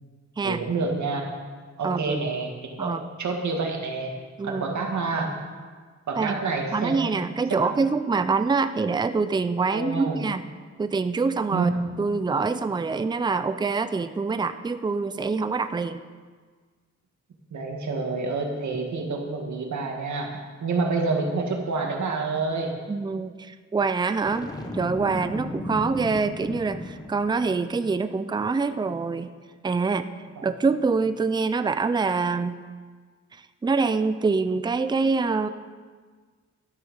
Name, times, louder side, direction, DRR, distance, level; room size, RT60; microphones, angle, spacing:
voice 1, 0.4-1.2 1.8-2.5 2.8-4.1 4.4-5.3 6.1-7.2 7.6-7.8 9.7-10.2 11.5-11.8 17.5-22.8 27.3-27.5 30.4-30.5, right 3 dB, 80° right, 1 dB, 2.0 m, -28 dB
voice 2, 1.8-2.2 2.8-3.1 4.4-4.8 6.2-6.4 6.7-10.4 10.8-11.7 12.0-16.0 22.9-29.3 29.6-30.1 30.4-32.6 33.3-35.5, right 4 dB, 15° right, 11 dB, 0.4 m, -25 dB
Boom, 24.3-27.5, left 2 dB, 15° left, 1.1 m, -35 dB
12.0 x 9.1 x 6.4 m, 1.5 s
wide cardioid pair, 150°, 29 cm